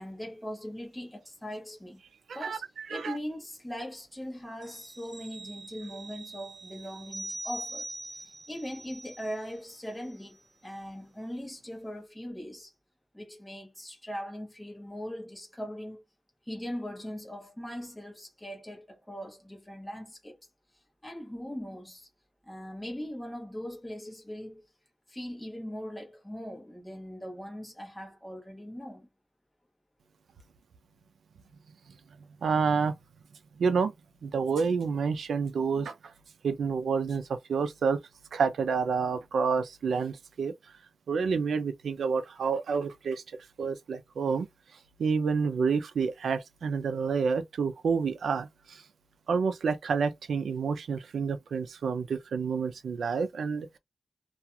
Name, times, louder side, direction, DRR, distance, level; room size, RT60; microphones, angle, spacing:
voice 1, 0.0-2.0 2.3-7.9 8.5-12.7 13.1-16.0 16.5-20.4 21.0-22.1 22.4-24.6 25.1-29.1, equal, 5° left, 0.9 m, -40 dB
sound 1, 4.6-9.7 10.1-10.2, right 2 dB, 40° right, 0.7 m, -43 dB
voice 2, 32.4-32.9 33.6-33.9 34.2-35.9 36.4-38.0 38.3-40.5 41.1-43.2 43.6-44.5 45.0-48.8 49.3-53.7, right 5 dB, 75° right, 0.4 m, -28 dB
2.4 x 2.3 x 2.8 m
wide cardioid pair, 180°, 0 cm